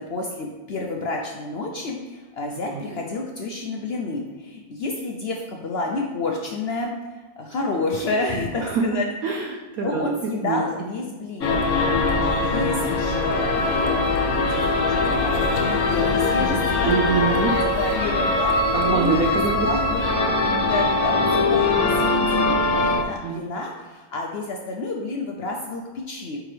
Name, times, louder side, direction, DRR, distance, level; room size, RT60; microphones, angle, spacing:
voice 1, 0.0-6.9 7.3-9.1 9.8-11.6 11.8-16.9 17.2-19.2 19.6-20.1 20.5-26.4, left 2 dB, 90° left, 1 dB, 0.5 m, -30 dB
voice 2, 9.2-10.1 10.4-10.6 16.8-17.5 18.7-19.7 23.2-23.5, right 5 dB, 70° right, 1 dB, 0.9 m, -24 dB
sound 1, 11.4-23.0, left 3 dB, 65° left, 1.2 m, -22 dB
9.1 x 3.8 x 3.3 m, 1.3 s
omnidirectional pair, 1.8 m